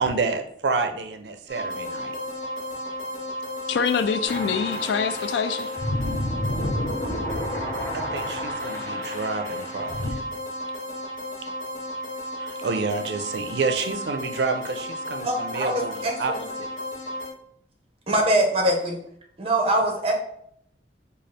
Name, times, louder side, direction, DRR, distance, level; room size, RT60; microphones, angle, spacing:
voice 1, 0.0-2.1 7.9-10.2 12.4-16.3, right 4 dB, 75° right, 7 dB, 0.4 m, -29 dB
sound 1, 1.5-17.3, left 1 dB, 50° left, 1.2 m, -33 dB
voice 2, 3.7-5.7, left 6 dB, 80° left, 9 dB, 0.3 m, -25 dB
sound 2, 4.2-10.1, equal, 15° left, 0.8 m, -31 dB
voice 3, 15.2-16.4 18.1-19.0 19.4-20.1, right 1 dB, 35° right, 1 dB, 0.7 m, -23 dB
3.9 x 2.3 x 3.2 m, 0.69 s
head